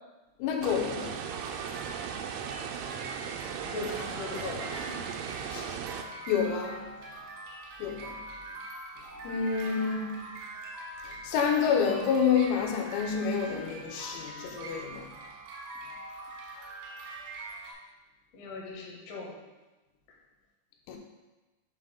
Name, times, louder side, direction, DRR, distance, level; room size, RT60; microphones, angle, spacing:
voice 1, 0.4-1.3 5.5-5.8 6.3-7.0 7.8-8.2 9.3-10.3 11.0-15.1 20.9-21.0, left 6 dB, 90° left, 3.5 m, -29 dB
sound 1, 0.6-6.0, right 7 dB, 90° right, 3.3 m, -37 dB
sound 2, 1.1-17.7, right 2 dB, 70° right, 3.6 m, -44 dB
voice 2, 3.6-5.1 18.3-19.3, left 3 dB, 70° left, 2.1 m, -39 dB
8.5 x 7.3 x 2.2 m
omnidirectional pair, 6.0 m